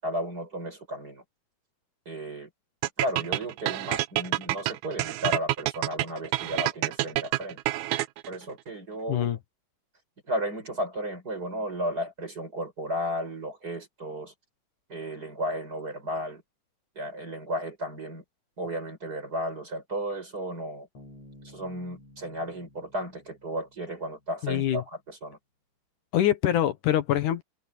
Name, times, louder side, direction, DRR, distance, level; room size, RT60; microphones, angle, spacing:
voice 1, 0.0-1.2 2.1-2.5 3.0-7.6 8.3-9.3 10.2-14.3 14.9-16.4 17.0-18.2 18.6-20.9 21.4-25.4, equal, 25° right, 7.8 m, -34 dB
sound 1, 2.8-8.4, right 16 dB, 75° right, 1.9 m, -28 dB
Bass guitar, 20.9-24.4, left 1 dB, 55° left, 5.7 m, -53 dB
voice 2, 24.4-24.8 26.1-27.4, left 12 dB, 75° left, 2.8 m, -24 dB
omnidirectional pair, 3.6 m